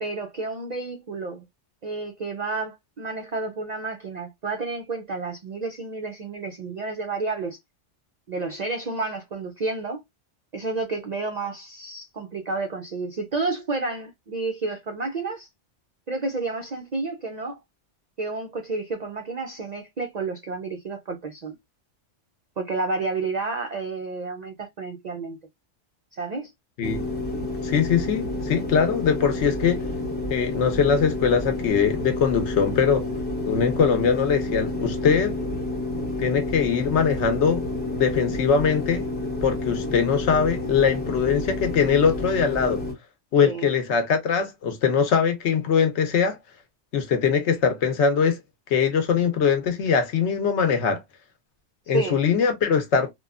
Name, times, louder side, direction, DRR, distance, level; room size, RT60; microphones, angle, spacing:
voice 1, 0.0-1.4 1.8-7.6 8.3-10.0 10.5-15.5 16.1-17.6 18.2-21.5 22.6-25.4 26.2-26.5 43.4-43.7 51.9-52.2, right 3 dB, 65° right, 0.4 m, -30 dB
sound 1, 26.8-42.9, left 1 dB, 10° left, 0.8 m, -29 dB
voice 2, 27.6-29.8 30.3-33.1 33.4-35.3 36.2-37.6 37.9-39.1 39.4-42.8 43.3-46.4 46.9-48.4 48.7-51.0 51.9-53.1, left 6 dB, 70° left, 0.9 m, -22 dB
3.0 x 2.2 x 2.2 m
omnidirectional pair, 1.3 m